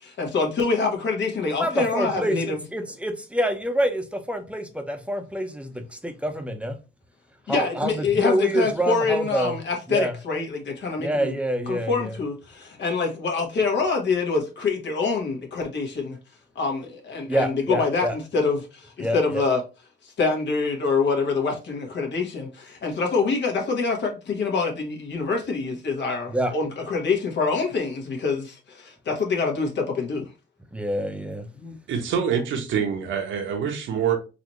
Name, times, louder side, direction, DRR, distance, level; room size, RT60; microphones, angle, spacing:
voice 1, 0.2-2.6 7.5-11.4 11.7-12.3 12.8-16.1 16.6-18.6 19.1-19.6 20.2-22.5 22.8-28.4 29.1-30.2 31.6-31.7, left 4 dB, 65° left, 1.6 m, -25 dB
voice 2, 1.6-6.8 7.5-9.5 9.9-10.1 11.0-12.1 17.3-18.1 19.0-19.4 26.3-26.5 30.7-31.5, right 1 dB, 5° right, 0.8 m, -26 dB
voice 3, 31.9-34.2, right 7 dB, 75° right, 1.1 m, -25 dB
4.0 x 2.9 x 3.1 m
cardioid pair, 90°, 20 cm